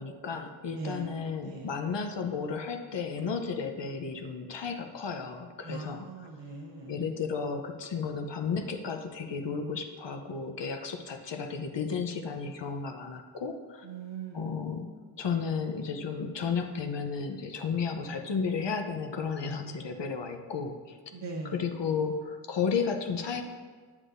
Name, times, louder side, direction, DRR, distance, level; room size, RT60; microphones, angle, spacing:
voice 1, 0.0-6.3 6.9-13.9 14.3-14.9 15.2-21.0 21.4-23.4, left 5 dB, 75° left, 5 dB, 0.7 m, -33 dB
voice 2, 0.8-1.1 1.4-1.7 5.6-6.9 13.8-14.6 21.1-21.6, right 3 dB, 85° right, 0 dB, 1.0 m, -40 dB
8.1 x 7.4 x 2.6 m, 1.5 s
wide cardioid pair, 70°, 44 cm